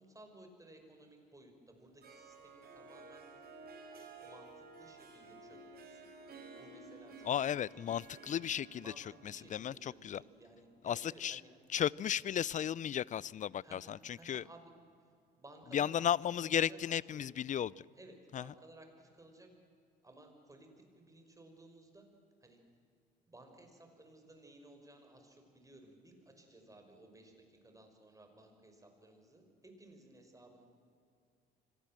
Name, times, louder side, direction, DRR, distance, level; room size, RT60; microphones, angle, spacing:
voice 1, 0.0-3.3 4.2-8.0 8.8-11.5 13.6-14.7 15.0-15.1 15.4-16.1 16.4-16.8 17.1-17.2 18.0-19.5 20.0-22.1 22.4-22.6 23.3-30.7, right 1 dB, 15° right, 5.6 m, -58 dB
Harp, 1.8-10.7, right 4 dB, 50° right, 4.2 m, -54 dB
voice 2, 7.2-10.2 10.8-11.4 11.7-14.4 15.7-17.9 18.3-18.5, left 9 dB, 35° left, 0.5 m, -35 dB
25.0 x 18.5 x 7.7 m
hypercardioid pair, 60°, 21 cm